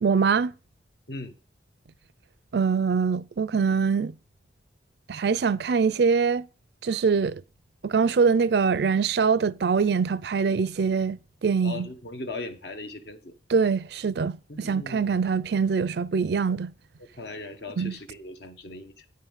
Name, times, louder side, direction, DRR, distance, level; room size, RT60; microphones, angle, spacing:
voice 1, 0.0-0.5 2.5-4.1 5.1-6.5 6.8-7.4 7.8-11.9 13.5-16.7 17.8-17.9, right 5 dB, 60° right, 0.4 m, -23 dB
voice 2, 11.6-13.3 14.5-15.1 17.2-19.1, left 2 dB, 60° left, 1.3 m, -38 dB
9.6 x 5.7 x 7.2 m
head